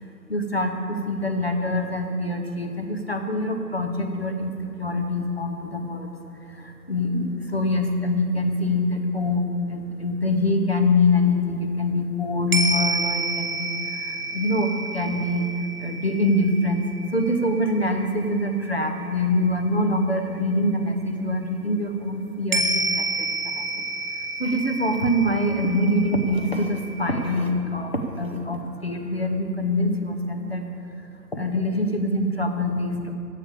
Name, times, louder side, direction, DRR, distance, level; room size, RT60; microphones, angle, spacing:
voice 1, 0.3-15.5 15.8-16.8 17.1-23.8 24.4-30.6 31.0-33.2, left 1 dB, 40° left, 4 dB, 0.8 m, -25 dB
sound 1, 12.5-20.6 22.5-27.4, right 2 dB, 55° right, 1.2 m, -30 dB
14.5 x 7.6 x 5.0 m, 2.6 s
figure-of-eight pair, 180°, 50 cm